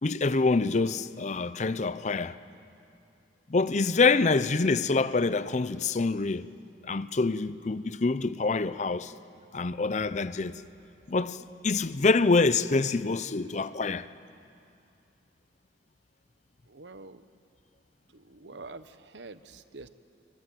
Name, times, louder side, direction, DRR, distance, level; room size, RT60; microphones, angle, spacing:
voice 1, 0.0-2.4 3.5-6.5 6.8-9.1 9.5-10.6 11.1-14.1, left 3 dB, 40° left, 0.6 m, -26 dB
voice 2, 16.7-17.3 18.1-19.9, right 3 dB, 70° right, 1.0 m, -46 dB
27.5 x 23.0 x 9.2 m
head